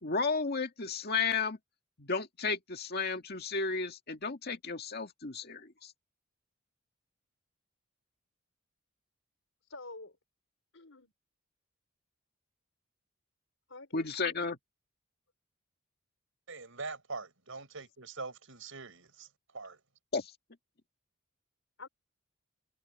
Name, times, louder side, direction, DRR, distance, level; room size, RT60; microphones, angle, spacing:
voice 1, 0.0-1.6 2.0-5.9 13.9-14.6 20.1-20.3, left 4 dB, 50° left, 2.0 m, -33 dB
voice 2, 9.7-10.2 10.7-11.1 13.7-14.1 21.8-21.9, left 3 dB, 70° left, 5.4 m, -47 dB
voice 3, 16.5-19.3 19.5-19.8, right 3 dB, 70° right, 5.7 m, -43 dB
head